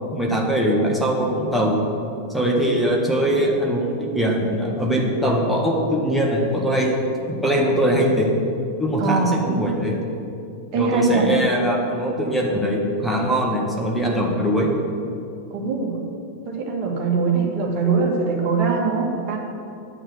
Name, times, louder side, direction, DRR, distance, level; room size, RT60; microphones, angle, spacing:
voice 1, 0.0-1.8 2.3-7.0 7.3-8.3 8.8-10.0 10.7-14.7, equal, ahead, -2 dB, 1.7 m, -21 dB
voice 2, 9.0-9.3 10.7-11.3 15.5-16.0 16.4-19.4, right 4 dB, 40° right, -1 dB, 2.2 m, -22 dB
9.2 x 6.3 x 8.1 m, 2.6 s
figure-of-eight pair, 90°, 0 cm